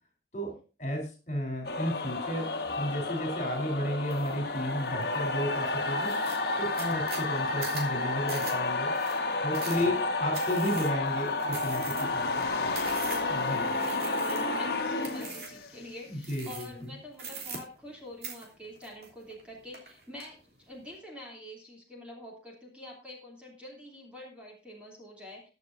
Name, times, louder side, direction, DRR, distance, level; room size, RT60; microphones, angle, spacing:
voice 1, 0.8-2.5 2.8-6.1 6.6-8.9 9.4-12.7 13.3-13.7 16.1-16.7, equal, 40° left, 3 dB, 3.6 m, -33 dB
sound 1, 1.6-15.8, left 3 dB, 60° left, 1.5 m, -31 dB
sound 2, 4.1-4.4 4.8-5.3 5.7-5.8 6.0-13.4 13.8-14.6 15.0-15.6 16.2-16.8 17.1-18.0 18.2-19.4 19.7-20.3, right 5 dB, 60° right, 3.1 m, -42 dB
voice 2, 9.7-10.1 13.1-25.5, left 1 dB, 5° right, -2 dB, 3.0 m, -46 dB
21.0 x 7.1 x 2.6 m, 0.34 s
head